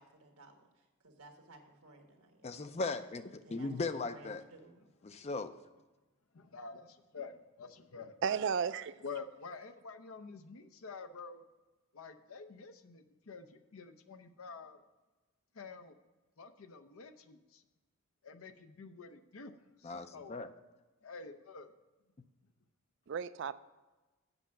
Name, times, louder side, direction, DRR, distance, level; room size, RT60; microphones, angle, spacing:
voice 1, 0.0-2.6 3.4-4.9, right 2 dB, 85° right, 3 dB, 1.4 m, -57 dB
voice 2, 2.4-3.2 3.5-4.4 5.1-5.5 19.8-20.5, left 3 dB, 30° left, 10 dB, 0.4 m, -37 dB
voice 3, 6.3-8.2 9.0-11.4 11.9-14.8 15.5-16.0 16.4-17.6 18.2-19.5 19.8-20.4 21.0-21.7, left 4 dB, 70° left, 9 dB, 0.6 m, -48 dB
voice 4, 8.2-8.9 23.1-23.6, right 6 dB, 55° right, 15 dB, 0.4 m, -33 dB
8.0 x 5.5 x 7.3 m, 1.2 s
head